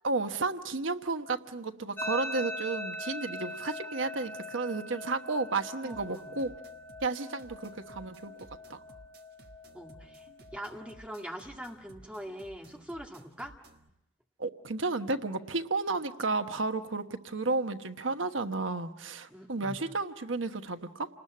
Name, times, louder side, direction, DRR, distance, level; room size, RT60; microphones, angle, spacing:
voice 1, 0.0-6.5 7.0-8.3 8.7-8.8 14.4-21.1, right 3 dB, 90° right, 8 dB, 1.2 m, -32 dB
sound 1, 2.0-11.0, left 1 dB, 10° left, 0.9 m, -42 dB
voice 2, 5.8-6.3 9.7-10.3 10.5-13.5 19.3-19.8, equal, 5° right, 1 dB, 2.0 m, -42 dB
sound 2, 5.9-13.9, right 1 dB, 55° right, 1.5 m, -56 dB
29.0 x 20.0 x 8.6 m, 0.90 s
head